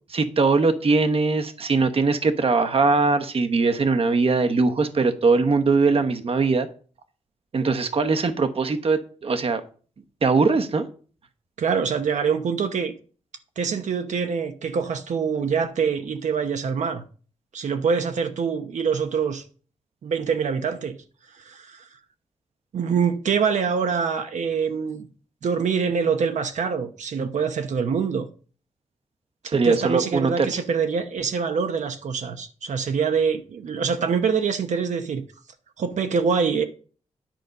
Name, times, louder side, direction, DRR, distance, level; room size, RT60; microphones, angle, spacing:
voice 1, 0.1-6.7 7.5-9.6 10.2-10.9 29.4-30.6, right 4 dB, 50° right, 1.0 m, -21 dB
voice 2, 11.6-12.9 13.6-17.0 17.5-19.4 20.0-21.0 21.3-21.9 22.7-25.1 25.4-28.3 29.6-35.2 35.8-36.6, right 6 dB, 75° right, 0.9 m, -25 dB
10.5 x 5.2 x 5.3 m
cardioid pair, 90°, 12 cm